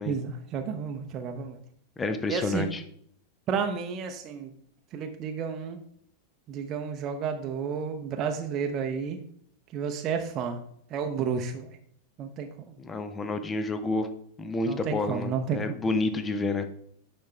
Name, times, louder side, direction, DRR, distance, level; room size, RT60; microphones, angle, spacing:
voice 1, 0.1-1.6 2.3-2.7 3.5-4.5 4.9-5.8 6.5-9.2 9.7-10.6 10.9-11.8 12.2-12.5 14.7-15.6, right 6 dB, 35° right, 5 dB, 0.8 m, -31 dB
voice 2, 2.0-2.8 12.8-14.1 14.4-16.7, left 3 dB, 15° left, 9 dB, 0.7 m, -29 dB
10.5 x 4.3 x 3.3 m, 0.65 s
figure-of-eight pair, 90°, 0 cm